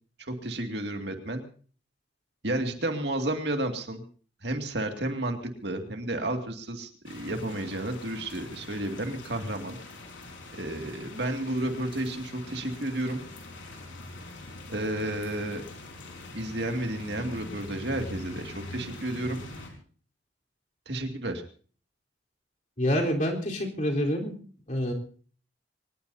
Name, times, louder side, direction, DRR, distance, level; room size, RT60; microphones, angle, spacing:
voice 1, 0.2-1.4 2.4-4.0 4.4-9.8 10.5-13.2 14.7-15.6 16.3-19.4 20.9-21.4, right 1 dB, 65° right, 4 dB, 2.3 m, -32 dB
sound 1, 7.0-19.7, left 2 dB, 90° left, 4.5 m, -43 dB
voice 2, 22.8-24.3 24.7-24.9, equal, 40° left, 0 dB, 3.9 m, -27 dB
24.0 x 19.5 x 2.8 m, 0.43 s
head